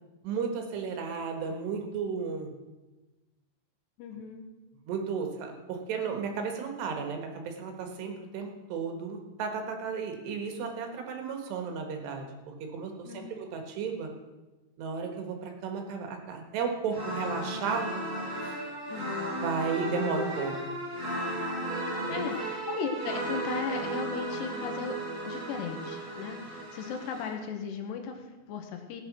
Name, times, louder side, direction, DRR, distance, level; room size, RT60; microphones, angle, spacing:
voice 1, 0.2-2.5 4.9-14.1 14.8-17.9 18.4-18.6 19.4-20.8 22.1-22.2, right 5 dB, 80° right, 4 dB, 3.8 m, -34 dB
voice 2, 4.0-4.5 13.0-13.5 18.9-19.3 22.1-25.0 25.3-29.0, left 6 dB, 85° left, 5 dB, 3.5 m, -36 dB
sound 1, 16.9-27.3, right 1 dB, 25° right, 6.5 m, -35 dB
16.5 x 8.8 x 6.1 m, 1.1 s
omnidirectional pair, 4.8 m